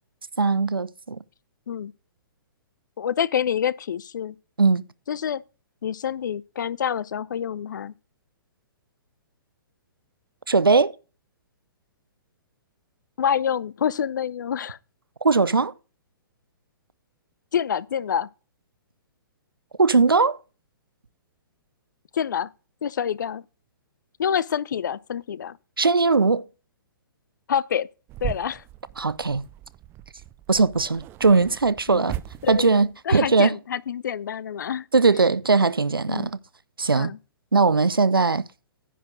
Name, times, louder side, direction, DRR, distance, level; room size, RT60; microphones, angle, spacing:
voice 1, 0.4-1.2 4.6-4.8 10.5-10.9 15.2-15.7 19.8-20.4 25.8-26.4 29.0-29.5 30.5-32.2 32.5-33.6 34.9-36.4 36.8-37.1 37.5-38.4, right 4 dB, 85° right, 0.6 m, -20 dB
voice 2, 3.0-4.4 5.1-5.4 5.8-7.9 13.2-14.8 17.5-18.3 22.1-22.5 22.8-23.5 24.2-25.6 27.5-27.9 28.2-28.6 31.9-32.0 32.4-34.9 36.1-36.3 36.9-37.2, left 8 dB, 60° left, 0.5 m, -27 dB
sound 1, 28.1-33.0, right 12 dB, 20° right, 0.5 m, -38 dB
10.0 x 4.3 x 6.0 m
figure-of-eight pair, 120°, 12 cm